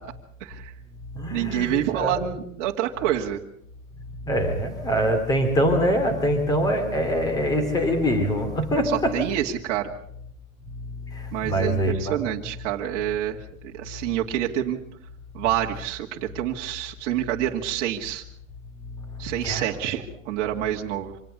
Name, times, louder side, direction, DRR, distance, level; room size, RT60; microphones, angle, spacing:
voice 1, 0.4-0.7 1.3-3.4 8.8-9.9 11.3-14.8 15.3-18.2 19.2-21.1, right 12 dB, 30° right, -1 dB, 2.2 m, -27 dB
voice 2, 1.1-2.2 4.3-9.1 11.1-12.2 19.1-19.6, equal, 10° left, 7 dB, 2.9 m, -24 dB
25.5 x 18.5 x 6.8 m, 0.70 s
supercardioid pair, 170°, 41 cm